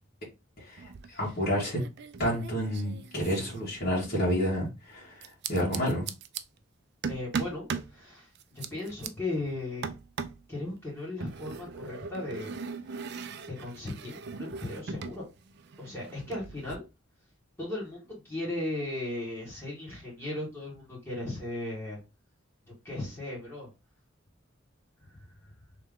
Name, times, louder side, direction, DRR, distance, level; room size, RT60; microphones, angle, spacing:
voice 1, 0.6-1.8 2.2-6.1, equal, 50° left, 1.8 m, -30 dB
sound 1, 0.8-1.3 1.6-4.2 5.2-6.4 7.0-7.9 8.4-9.1 9.8-10.5 11.2-15.2 15.5-16.8, right 5 dB, 55° right, 0.4 m, -39 dB
voice 2, 7.1-9.9 10.5-12.5 13.5-15.2 15.8-16.8 17.6-22.0 22.8-23.7 25.0-25.5, left 2 dB, 15° left, 1.8 m, -37 dB
3.3 x 3.2 x 3.5 m
head